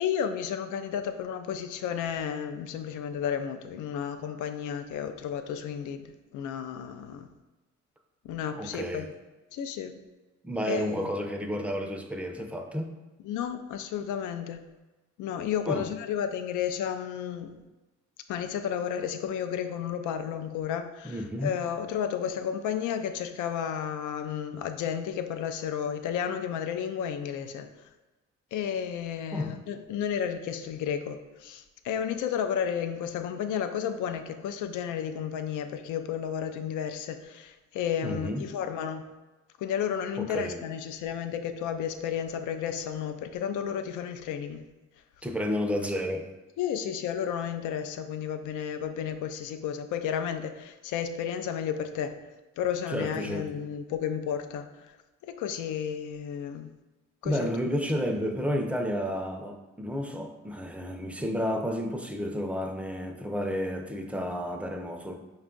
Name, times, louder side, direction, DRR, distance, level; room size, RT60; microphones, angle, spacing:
voice 1, 0.0-7.3 8.2-9.1 9.5-10.0 10.7-11.1 13.2-14.6 15.2-17.6 18.3-27.7 28.5-39.0 39.6-44.6 46.6-52.2 52.6-55.0 55.2-56.7 57.2-57.8, left 8 dB, 80° left, 8 dB, 0.5 m, -32 dB
voice 2, 8.5-9.1 10.4-12.9 15.7-15.9 21.0-21.5 29.3-29.5 38.0-38.5 40.2-40.6 45.2-46.3 52.9-53.5 57.2-65.2, equal, 5° right, 4 dB, 0.5 m, -31 dB
5.2 x 2.3 x 3.7 m, 1.1 s
cardioid pair, 90°, 30 cm